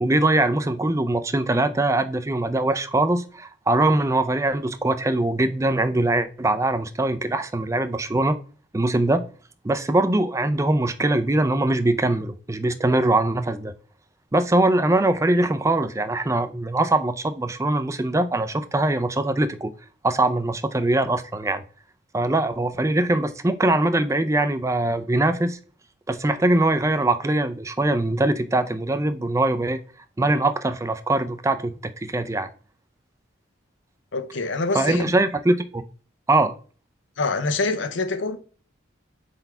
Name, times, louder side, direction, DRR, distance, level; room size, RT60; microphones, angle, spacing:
voice 1, 0.0-8.4 8.7-9.2 9.6-13.7 14.3-19.7 20.0-21.6 22.1-25.6 26.1-29.8 30.2-32.5 34.7-35.8 36.3-36.5, right 2 dB, 15° right, 0.4 m, -22 dB
voice 2, 34.1-35.1 37.2-38.4, left 3 dB, 70° left, 0.7 m, -25 dB
4.6 x 4.0 x 5.4 m
head